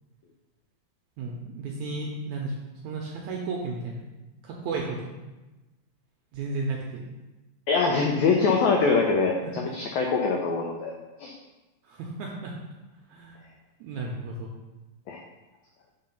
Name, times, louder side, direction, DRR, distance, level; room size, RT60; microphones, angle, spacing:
voice 1, 1.2-2.5 2.8-4.0 4.4-5.1 6.3-7.0 9.4-9.5 11.8-12.5 13.1-13.4 13.8-14.5, right 3 dB, 80° right, -1 dB, 1.7 m, -33 dB
voice 2, 7.7-10.9 11.2-11.3 15.1-15.2, left 4 dB, 85° left, 1 dB, 1.6 m, -23 dB
5.5 x 3.7 x 5.7 m, 1.1 s
omnidirectional pair, 4.0 m